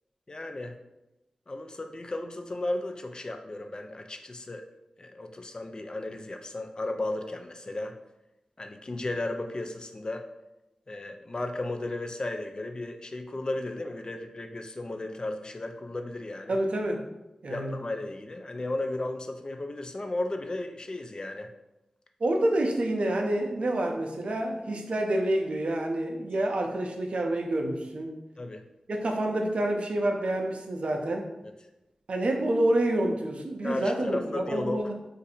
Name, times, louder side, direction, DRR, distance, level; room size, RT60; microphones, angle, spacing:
voice 1, 0.3-0.8 1.5-4.6 5.0-8.0 8.6-10.2 10.9-16.6 17.5-21.5 28.4-28.6 33.6-34.8, left 2 dB, 40° left, 5 dB, 0.4 m, -34 dB
voice 2, 16.5-17.0 17.4-17.8 22.2-28.1 28.9-31.3 32.1-34.9, right 1 dB, 70° right, 3 dB, 0.5 m, -28 dB
2.6 x 2.5 x 4.1 m, 0.96 s
cardioid pair, 50°, 2 cm